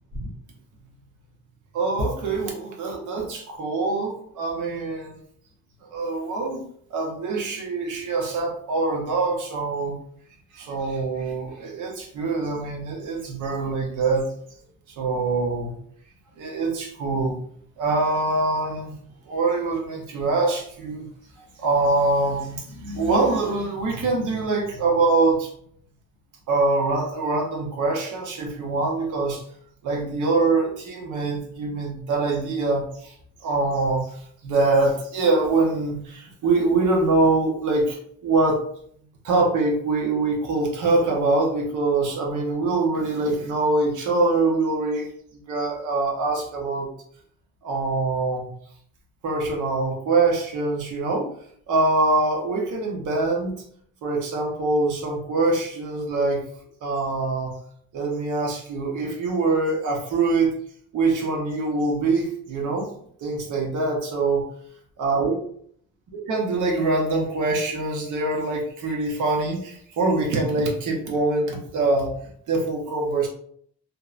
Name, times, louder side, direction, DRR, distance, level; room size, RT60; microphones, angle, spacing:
voice 1, 1.7-5.2 5.8-6.6 6.9-9.9 10.5-14.3 14.9-15.7 16.4-17.3 17.8-18.9 19.3-21.1 21.6-25.5 26.5-29.4 29.8-33.1 33.4-38.0 38.2-38.6 39.2-45.1 45.5-46.9 47.6-48.5 49.2-51.3 51.7-53.5 54.0-56.4 56.8-57.5 57.9-60.5 60.9-62.9 63.2-64.4 65.0-65.3 66.3-72.1 72.5-73.3, right 3 dB, 80° right, 0 dB, 0.9 m, -24 dB
2.6 x 2.1 x 2.4 m, 0.63 s
cardioid pair, 90°, 30 cm